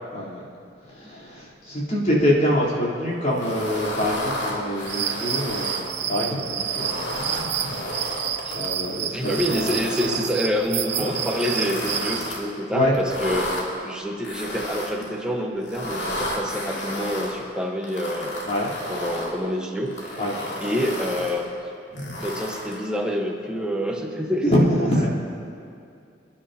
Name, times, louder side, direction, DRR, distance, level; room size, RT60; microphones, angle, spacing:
voice 1, 0.1-0.5 0.9-7.8 8.1-10.2 12.7-13.0 18.4-18.7 20.2-20.7 21.9-22.2 24.4-25.1, equal, 45° left, -9 dB, 3.9 m, -25 dB
sound 1, 3.3-5.9 6.5-8.7 9.1-10.2 10.8-12.4 12.9-13.6 14.2-15.1 15.6-17.3 17.8-19.3 19.9-21.4 22.0-22.8, left 1 dB, 80° left, 2.8 m, -32 dB
sound 2, 4.9-12.3, right 9 dB, 80° right, 0.7 m, -29 dB
voice 2, 9.1-18.4 18.9-20.2 20.6-21.5 22.2-24.5 25.0-25.1, equal, 5° right, -1 dB, 1.3 m, -27 dB
27.5 x 10.0 x 3.0 m, 2.4 s
head